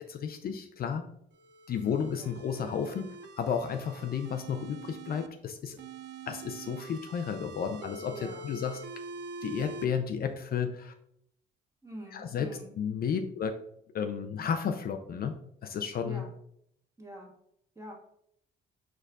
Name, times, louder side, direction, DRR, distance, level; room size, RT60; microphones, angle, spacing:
voice 1, 0.1-1.0 1.7-5.8 6.3-8.8 9.4-10.9 12.1-12.5 12.8-13.6 13.9-15.3 15.6-16.2, left 7 dB, 50° left, 6 dB, 0.4 m, -32 dB
sound 1, 1.3-5.3 5.8-9.9, right 3 dB, 65° right, 0.4 m, -45 dB
voice 2, 8.1-8.5 11.8-12.7 16.0-16.3 17.0-17.3 17.7-17.9, equal, 15° right, -2 dB, 1.4 m, -44 dB
4.8 x 4.5 x 2.3 m, 0.74 s
cardioid pair, 90°, 20 cm